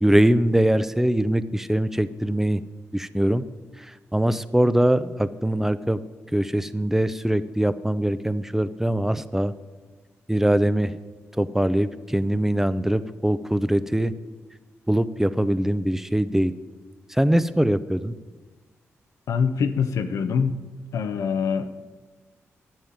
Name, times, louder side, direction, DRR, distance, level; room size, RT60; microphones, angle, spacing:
voice 1, 0.0-2.6 2.9-3.4 3.8-6.0 6.3-9.5 10.3-11.0 11.4-14.1 14.9-16.5 17.1-18.1, right 1 dB, 5° right, 14 dB, 0.7 m, -22 dB
voice 2, 19.3-20.6 20.9-21.9, left 6 dB, 80° left, 8 dB, 0.8 m, -24 dB
10.5 x 7.3 x 9.4 m, 1.3 s
cardioid pair, 65°, 5 cm